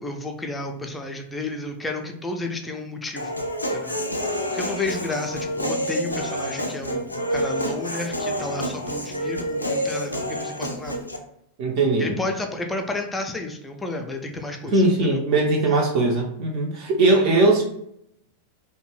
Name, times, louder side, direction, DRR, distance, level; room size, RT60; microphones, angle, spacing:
voice 1, 0.0-3.3 3.7-3.9 4.2-11.0 12.0-15.2 17.1-17.3, left 2 dB, 10° left, 3 dB, 0.4 m, -32 dB
Human voice, 3.2-11.2, equal, 85° left, 0.3 m, -28 dB
voice 2, 11.6-12.1 14.7-17.6, right 2 dB, 40° right, 0 dB, 0.5 m, -20 dB
2.6 x 2.1 x 3.0 m, 0.73 s
figure-of-eight pair, 90°, 0 cm